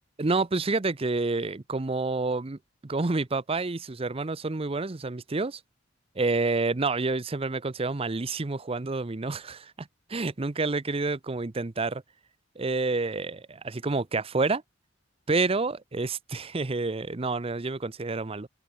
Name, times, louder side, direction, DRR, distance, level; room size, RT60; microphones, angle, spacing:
voice 1, 0.2-5.6 6.2-12.0 12.6-14.6 15.3-18.5, right 3 dB, 30° right, 0.7 m, -29 dB
head